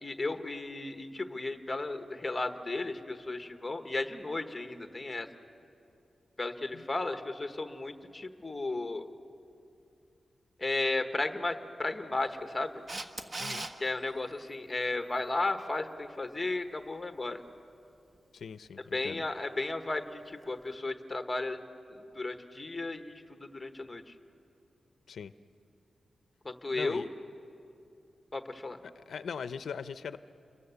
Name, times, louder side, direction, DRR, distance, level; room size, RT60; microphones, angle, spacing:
voice 1, 0.0-5.3 6.4-9.1 10.6-12.8 13.8-17.4 18.9-21.6 21.9-24.1 26.4-27.1 28.3-28.8, left 2 dB, 15° left, 7 dB, 1.2 m, -34 dB
Camera, 12.9-13.7 20.4-20.5, right 2 dB, 30° right, 1.2 m, -37 dB
voice 2, 13.4-13.7 18.3-19.2 25.1-25.3 26.7-27.1 28.8-30.2, left 6 dB, 90° left, 12 dB, 0.5 m, -40 dB
29.5 x 22.5 x 6.9 m, 2.6 s
wide cardioid pair, 150°, 0 cm